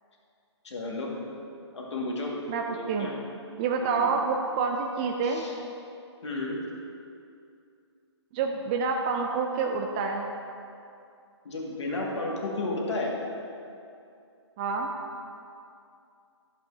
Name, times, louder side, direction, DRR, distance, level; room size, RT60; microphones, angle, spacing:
voice 1, 0.6-1.1 1.7-2.3 2.7-3.1 3.8-4.2 5.2-5.5 6.2-6.6 11.4-13.1, left 2 dB, 75° left, -2 dB, 1.9 m, -32 dB
voice 2, 2.5-3.1 3.6-5.4 8.3-10.3 14.6-14.9, right 5 dB, 20° right, 2 dB, 0.3 m, -28 dB
12.0 x 7.8 x 2.7 m, 2.5 s
hypercardioid pair, 150°, 15 cm